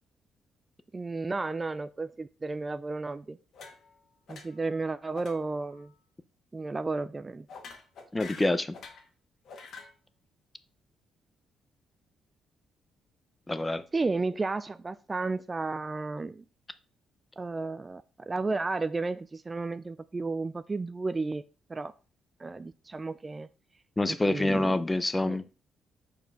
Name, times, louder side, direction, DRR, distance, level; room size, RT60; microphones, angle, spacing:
voice 1, 0.9-3.4 4.3-5.9 6.5-7.5 13.9-16.4 17.4-21.4 21.7-21.9 22.4-23.5 24.1-24.8 25.2-25.4, right 3 dB, 25° right, 0.4 m, -33 dB
sound 1, 3.5-4.0 4.3-4.7 5.1-5.4 5.7-5.9 7.5-9.1 9.4-9.9, left 4 dB, 65° left, 1.8 m, -47 dB
voice 2, 8.1-8.7 13.5-13.8 24.0-25.5, left 2 dB, 15° left, 0.6 m, -27 dB
5.4 x 4.4 x 6.1 m
cardioid pair, 90°, 0 cm